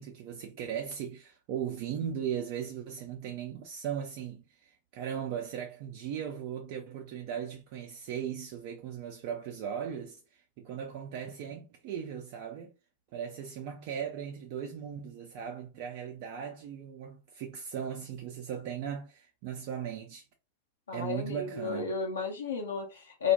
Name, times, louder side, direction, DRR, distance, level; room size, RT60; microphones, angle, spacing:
voice 1, 0.0-12.7 13.1-20.2 20.9-21.9, right 8 dB, 45° right, 0.4 m, -38 dB
voice 2, 20.9-23.3, left 6 dB, 70° left, 0.7 m, -32 dB
2.1 x 2.1 x 2.9 m
figure-of-eight pair, 90°, 0 cm